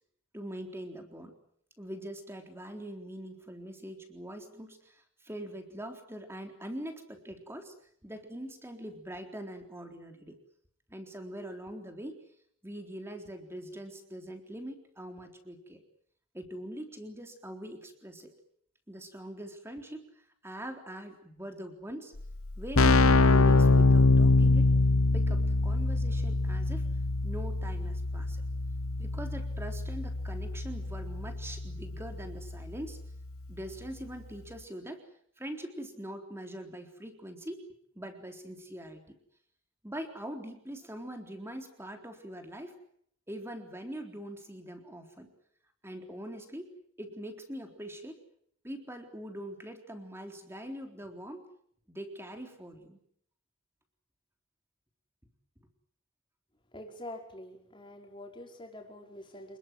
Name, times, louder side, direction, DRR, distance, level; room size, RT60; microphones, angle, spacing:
voice 1, 0.3-1.4 1.8-7.7 8.0-10.4 10.9-12.2 12.6-15.8 16.3-18.3 18.9-22.1 22.6-24.7 25.1-26.9 27.2-28.4 29.0-33.0 33.5-35.0 35.4-37.7 37.9-39.0 39.8-42.8 43.3-45.3 45.8-48.2 48.6-51.5 51.9-53.0, right 1 dB, 10° right, 4 dB, 3.8 m, -43 dB
Keyboard (musical), 22.2-22.3 22.5-33.1, left 3 dB, 75° left, 1.1 m, -25 dB
voice 2, 56.7-59.6, left 1 dB, 20° left, 2 dB, 5.0 m, -46 dB
28.5 x 21.0 x 7.7 m, 0.67 s
head